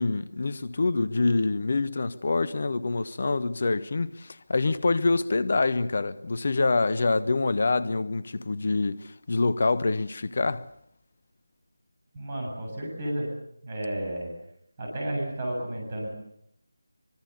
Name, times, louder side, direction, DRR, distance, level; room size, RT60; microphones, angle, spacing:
voice 1, 0.0-9.0 9.3-10.7, left 3 dB, 45° left, 1.2 m, -26 dB
voice 2, 12.1-13.3 13.6-14.3 14.8-16.1, right 1 dB, 25° right, 7.8 m, -32 dB
25.0 x 23.0 x 6.9 m
figure-of-eight pair, 160°, 0 cm